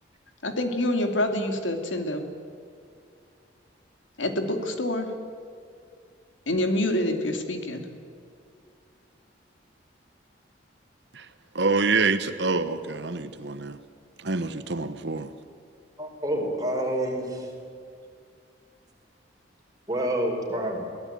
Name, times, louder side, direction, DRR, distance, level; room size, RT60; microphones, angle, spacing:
voice 1, 0.4-2.2 4.2-5.1 6.5-7.9, left 1 dB, 80° left, 6 dB, 2.8 m, -26 dB
voice 2, 11.5-13.8 14.2-15.3, right 4 dB, 65° right, 11 dB, 1.1 m, -26 dB
voice 3, 16.0-17.5 19.9-20.8, right 1 dB, 20° right, 1 dB, 4.6 m, -28 dB
23.0 x 17.5 x 9.1 m, 2.4 s
head